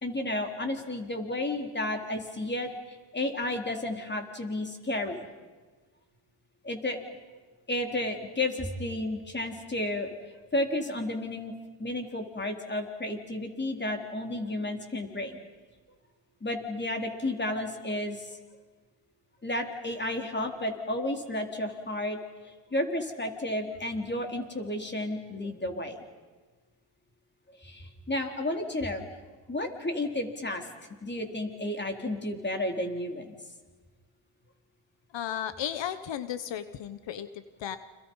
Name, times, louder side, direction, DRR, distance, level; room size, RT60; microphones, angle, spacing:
voice 1, 0.0-5.3 6.6-7.1 7.7-15.4 16.4-18.4 19.4-26.0 27.5-29.0 29.5-30.7 31.0-33.4, left 1 dB, 25° left, 3 dB, 4.0 m, -32 dB
voice 2, 35.1-37.8, left 10 dB, 90° left, 12 dB, 1.2 m, -35 dB
30.0 x 27.0 x 5.7 m, 1.4 s
cardioid pair, 85°, 43 cm